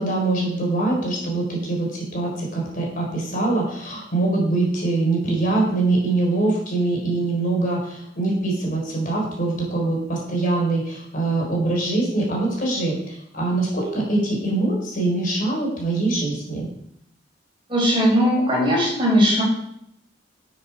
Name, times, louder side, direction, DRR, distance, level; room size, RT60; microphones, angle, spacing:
voice 1, 0.0-16.7, right 2 dB, 45° left, -2 dB, 4.2 m, -23 dB
voice 2, 17.7-19.4, equal, 25° right, -3 dB, 4.9 m, -18 dB
12.5 x 8.1 x 4.7 m, 0.73 s
head